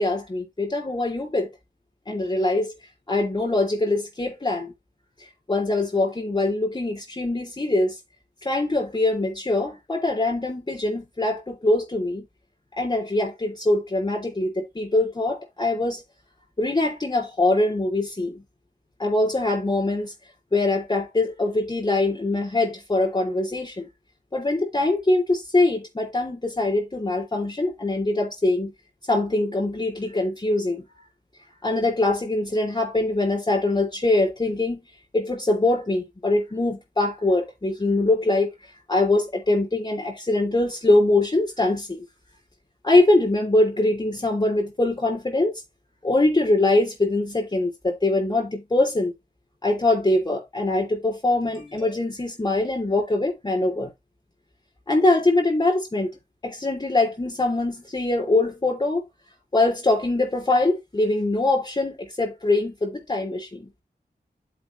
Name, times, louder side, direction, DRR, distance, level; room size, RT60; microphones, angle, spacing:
voice 1, 0.0-1.5 2.1-2.7 3.1-4.7 5.5-7.9 8.4-12.3 12.8-16.0 16.6-18.4 19.0-20.1 20.5-23.9 24.3-28.7 29.1-30.8 31.6-34.8 35.1-38.5 38.9-42.0 42.8-45.5 46.0-49.1 49.6-53.9 54.9-56.1 56.4-59.0 59.5-63.7, left 2 dB, 25° left, 3.2 m, -23 dB
11.0 x 4.8 x 3.1 m
wide cardioid pair, 85°, 17 cm